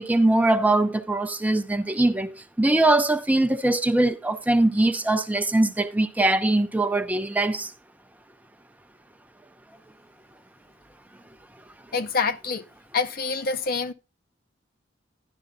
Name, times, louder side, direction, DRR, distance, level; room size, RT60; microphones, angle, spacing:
voice 1, 0.0-7.7, right 2 dB, 10° right, 0.5 m, -22 dB
voice 2, 11.9-12.6 12.9-13.9, left 4 dB, 50° left, 0.6 m, -26 dB
11.5 x 11.0 x 2.5 m
head